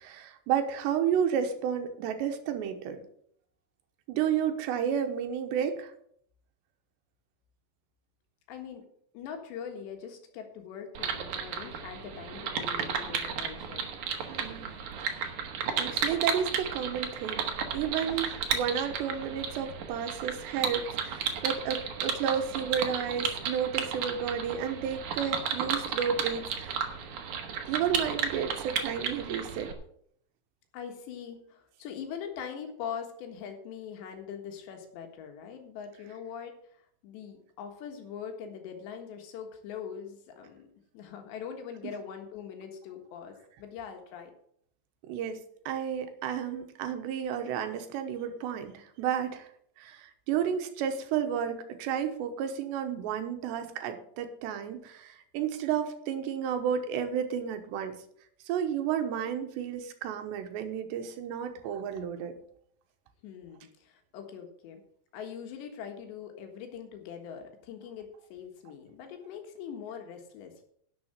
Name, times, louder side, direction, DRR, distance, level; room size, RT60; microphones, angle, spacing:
voice 1, 0.0-3.0 4.1-5.9 14.3-14.7 15.0-15.3 15.8-26.9 27.7-29.7 45.0-45.4 45.7-49.5 49.8-58.0 58.5-62.3, right 8 dB, 85° right, 7 dB, 3.3 m, -32 dB
voice 2, 8.5-8.8 9.1-13.9 30.7-40.7 40.9-44.3 63.2-64.8 65.1-70.6, left 7 dB, 85° left, 4 dB, 3.8 m, -42 dB
sound 1, 10.9-29.7, right 7 dB, 60° right, 2.2 m, -33 dB
11.5 x 6.8 x 6.7 m, 0.66 s
omnidirectional pair, 4.9 m